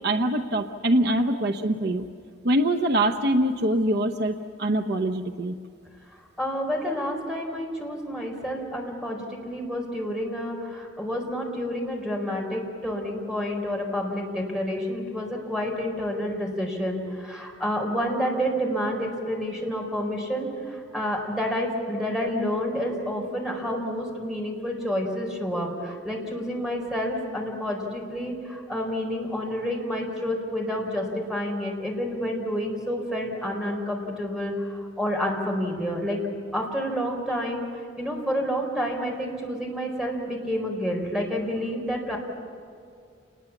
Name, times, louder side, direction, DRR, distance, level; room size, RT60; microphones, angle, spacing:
voice 1, 0.0-2.1 2.4-5.6, right 1 dB, 60° right, 7 dB, 0.9 m, -24 dB
voice 2, 6.4-36.2 36.5-37.7 38.0-42.2, equal, 5° right, 0 dB, 4.5 m, -29 dB
28.5 x 20.5 x 7.2 m, 2.3 s
head